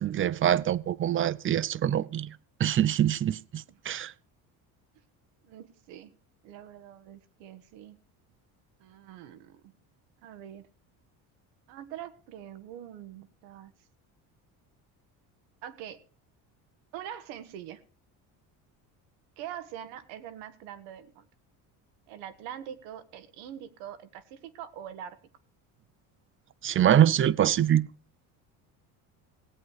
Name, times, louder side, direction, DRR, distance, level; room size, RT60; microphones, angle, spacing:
voice 1, 0.0-2.3 2.6-4.1 26.6-27.9, right 10 dB, 30° right, 0.5 m, -24 dB
voice 2, 5.4-6.1 6.4-8.0 8.8-9.7 10.2-10.7 11.7-13.7 15.6-16.0 16.9-17.8 19.4-21.3 22.1-25.2, right 10 dB, 85° right, 1.4 m, -44 dB
17.0 x 8.3 x 4.7 m
supercardioid pair, 100°, 42 cm